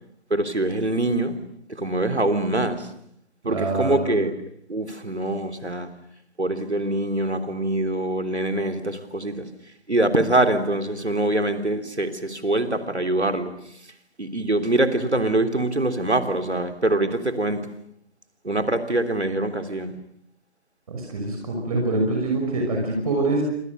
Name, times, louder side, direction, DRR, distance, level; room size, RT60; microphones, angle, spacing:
voice 1, 0.3-1.4 1.7-2.9 3.5-4.4 4.7-5.9 6.4-9.5 9.9-13.5 14.2-17.7 18.4-20.0, right 1 dB, 85° right, 7 dB, 3.5 m, -24 dB
voice 2, 3.4-4.2 20.9-23.4, right 2 dB, 35° right, 0 dB, 6.1 m, -25 dB
28.5 x 26.0 x 6.6 m, 0.72 s
figure-of-eight pair, 155°, 33 cm